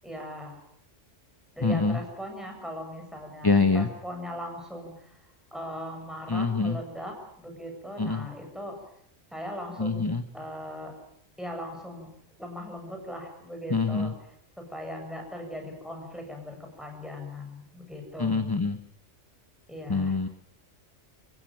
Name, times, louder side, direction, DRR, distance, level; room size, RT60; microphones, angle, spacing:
voice 1, 0.0-0.6 1.5-8.8 9.3-10.0 10.3-10.9 11.4-12.1 12.4-14.1 14.6-18.5 19.7-20.2, equal, ahead, 2 dB, 7.3 m, -39 dB
voice 2, 1.6-2.0 3.4-3.9 6.3-6.8 8.0-8.3 9.8-10.2 13.7-14.1 18.2-18.8 19.9-20.3, left 4 dB, 20° left, 10 dB, 0.9 m, -25 dB
27.5 x 15.5 x 9.0 m, 0.69 s
omnidirectional pair, 1.2 m